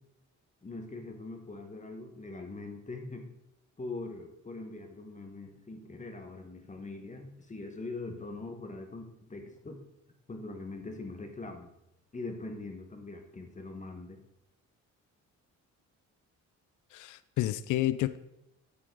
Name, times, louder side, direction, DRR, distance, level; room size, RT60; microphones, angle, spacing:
voice 1, 0.6-3.3 3.8-9.8 10.3-11.7 12.1-14.2, left 3 dB, 25° left, 4 dB, 1.3 m, -42 dB
voice 2, 16.9-18.2, left 14 dB, 80° left, 15 dB, 0.5 m, -30 dB
8.3 x 7.6 x 3.9 m, 0.85 s
cardioid pair, 90°, 30 cm